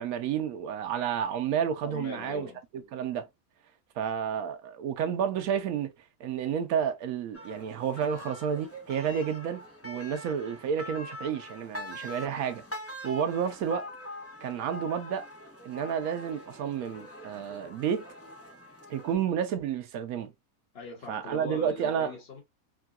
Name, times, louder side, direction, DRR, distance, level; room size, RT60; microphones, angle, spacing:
voice 1, 0.0-2.5 2.9-3.3 4.0-5.9 6.2-12.6 13.0-13.9 14.4-15.3 15.6-18.1 18.9-20.3 21.1-22.1, right 8 dB, 80° right, 1.1 m, -30 dB
voice 2, 1.8-2.6 20.7-22.4, left 4 dB, 45° left, 1.3 m, -41 dB
sound 1, 7.3-19.1, left 1 dB, 10° left, 0.8 m, -43 dB
3.7 x 2.2 x 2.3 m
omnidirectional pair, 1.5 m